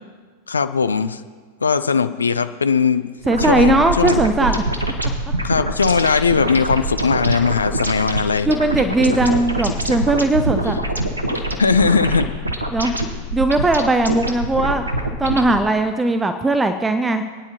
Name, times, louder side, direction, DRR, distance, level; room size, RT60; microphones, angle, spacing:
voice 1, 0.5-1.2 1.6-3.1 3.5-4.2 5.4-8.5 11.6-12.3, left 5 dB, 75° left, 12 dB, 0.5 m, -19 dB
sound 1, 3.2-15.6, right 1 dB, 80° right, 1.1 m, -24 dB
voice 2, 3.3-4.6 8.4-10.8 12.7-13.0 13.3-14.8 15.2-17.2, right 2 dB, 10° right, 8 dB, 0.6 m, -18 dB
25.5 x 9.7 x 2.9 m, 1.5 s
figure-of-eight pair, 90°, 0 cm